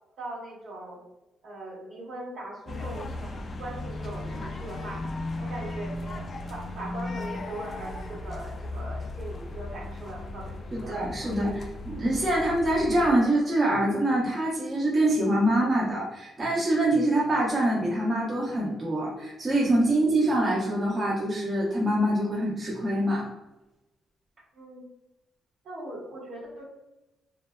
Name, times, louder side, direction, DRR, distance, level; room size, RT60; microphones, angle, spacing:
voice 1, 0.2-1.0 1.4-5.0 5.4-6.2 6.5-11.4 24.5-24.8 25.6-26.6, right 1 dB, 65° right, -3 dB, 1.0 m, -40 dB
sound 1, 2.7-13.1, left 2 dB, 40° left, 0.3 m, -36 dB
voice 2, 10.7-23.3, right 1 dB, 30° right, -5 dB, 0.8 m, -25 dB
2.6 x 2.3 x 2.2 m, 0.97 s
cardioid pair, 90°, 0 cm